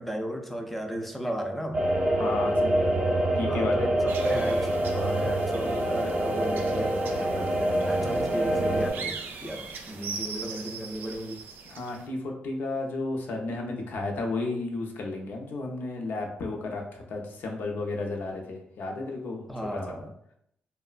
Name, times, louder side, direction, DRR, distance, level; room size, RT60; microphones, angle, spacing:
voice 1, 0.0-1.8 3.4-11.4 19.5-20.1, equal, 5° left, 3 dB, 0.4 m, -35 dB
sound 1, 1.7-8.9, right 1 dB, 35° right, 0.7 m, -26 dB
voice 2, 2.2-3.1 3.4-3.9 11.6-19.5 19.7-19.8, left 2 dB, 70° left, 2 dB, 0.5 m, -33 dB
sound 2, 4.1-12.1, right 5 dB, 75° right, 0.3 m, -41 dB
2.9 x 2.1 x 2.4 m, 0.72 s
cardioid pair, 115°, 3 cm